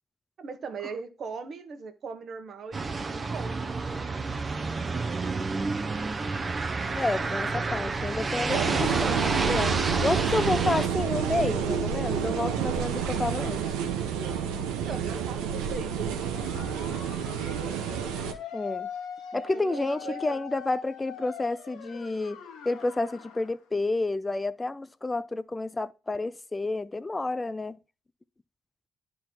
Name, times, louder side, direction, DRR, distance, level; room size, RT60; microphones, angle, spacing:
voice 1, 0.4-2.8 3.1-3.8 14.7-16.8 17.8-18.4 19.3-20.4, right 5 dB, 60° right, 1.1 m, -40 dB
sound 1, 2.7-10.9, right 3 dB, 35° right, 0.8 m, -29 dB
voice 2, 7.0-13.7 18.5-18.9 19.3-27.8, left 2 dB, 25° left, 0.4 m, -30 dB
sound 2, 8.5-18.3, right 8 dB, 90° right, 0.8 m, -29 dB
sound 3, 16.3-23.5, left 8 dB, 85° left, 1.1 m, -42 dB
10.0 x 3.8 x 4.4 m
supercardioid pair, 60°, 0 cm